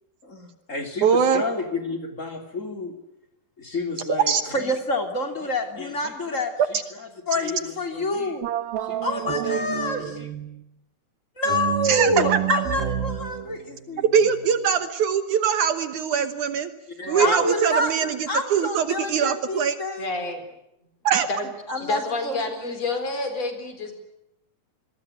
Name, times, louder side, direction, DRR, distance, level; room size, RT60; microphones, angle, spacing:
voice 1, 0.2-3.0 3.6-8.5 8.8-10.4 11.4-14.0 17.0-20.1 21.7-22.7, left 1 dB, 20° left, 5 dB, 3.1 m, -28 dB
voice 2, 1.0-1.4 4.1-4.4 11.9-12.6 14.1-16.7 17.1-19.8 21.0-21.3, right 7 dB, 65° right, 10 dB, 2.3 m, -22 dB
sound 1, 8.4-10.7 11.5-14.8, right 11 dB, 85° right, 3.2 m, -30 dB
voice 3, 17.0-17.5 20.0-20.4 21.3-21.5 21.8-24.0, left 2 dB, 45° left, 8 dB, 5.1 m, -29 dB
27.0 x 21.5 x 10.0 m, 0.83 s
omnidirectional pair, 4.1 m